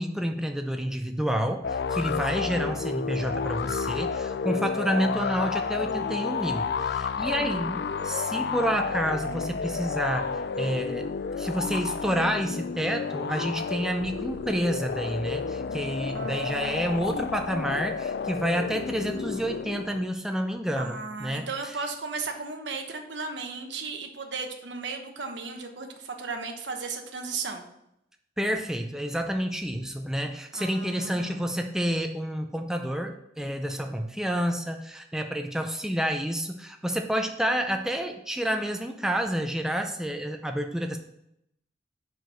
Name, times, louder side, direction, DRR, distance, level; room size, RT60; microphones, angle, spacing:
voice 1, 0.0-11.1 11.3-21.7 28.4-41.0, equal, 5° right, 4 dB, 0.4 m, -29 dB
sound 1, 1.6-20.1, left 5 dB, 60° left, 0.4 m, -31 dB
voice 2, 7.3-8.1 16.1-17.3 20.8-27.7 30.5-31.4, right 4 dB, 85° right, 4 dB, 1.1 m, -36 dB
6.0 x 5.0 x 6.7 m, 0.79 s
head